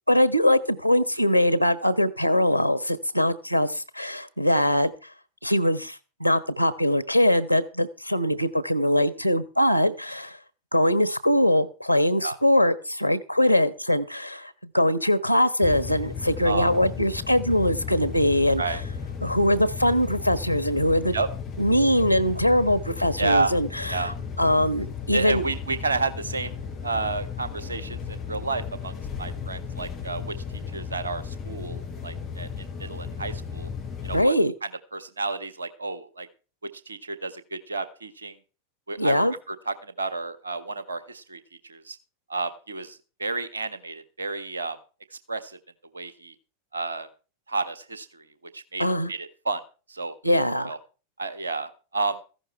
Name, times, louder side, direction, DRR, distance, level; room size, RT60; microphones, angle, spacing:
voice 1, 0.1-4.9 5.4-10.4 10.7-18.7 19.2-21.1 21.6-24.1 24.4-25.4 34.1-34.5 39.0-39.3 48.8-49.1 50.2-50.7, left 1 dB, 90° right, 16 dB, 1.2 m, -22 dB
sound 1, 15.6-34.2, left 6 dB, 30° left, 7.0 m, -35 dB
voice 2, 23.2-23.5 23.9-24.1 25.1-26.6 26.8-30.4 30.7-32.5 32.8-33.7 34.0-34.3 34.9-36.3 36.9-38.4 38.9-41.4 41.7-42.0 42.3-44.8 45.1-45.6 45.9-46.3 46.7-47.1 47.5-48.2 48.5-49.6 49.9-50.1 50.7-50.8 51.2-52.2, right 3 dB, 75° right, 13 dB, 1.6 m, -31 dB
15.0 x 11.0 x 4.4 m, 0.34 s
figure-of-eight pair, 90°, 0 cm